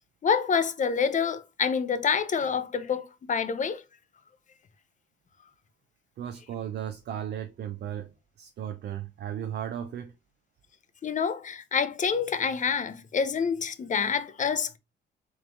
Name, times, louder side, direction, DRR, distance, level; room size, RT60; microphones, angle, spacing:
voice 1, 0.2-3.8 11.0-14.8, left 6 dB, 40° left, 0.6 m, -27 dB
voice 2, 6.2-10.1, right 9 dB, 55° right, 0.5 m, -36 dB
3.6 x 3.1 x 3.5 m
cardioid pair, 90°, 20 cm